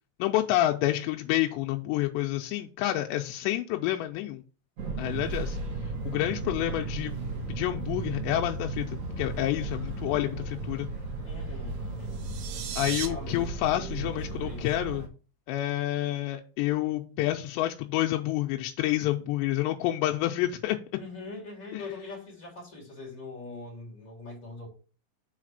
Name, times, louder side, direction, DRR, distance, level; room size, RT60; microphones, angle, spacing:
voice 1, 0.2-4.4 5.0-5.6 6.1-7.1 7.5-10.9 12.8-15.0 15.5-20.8 21.7-21.8, left 14 dB, 85° left, 2.8 m, -28 dB
Fixed-wing aircraft airplane, 4.8-15.1, right 3 dB, 50° right, 2.4 m, -35 dB
voice 2, 11.2-12.2 13.0-14.7 20.9-24.7, left 3 dB, 20° left, 3.0 m, -42 dB
sound 1, 12.0-13.1, right 9 dB, 70° right, 2.4 m, -36 dB
6.5 x 4.1 x 6.4 m
omnidirectional pair, 5.0 m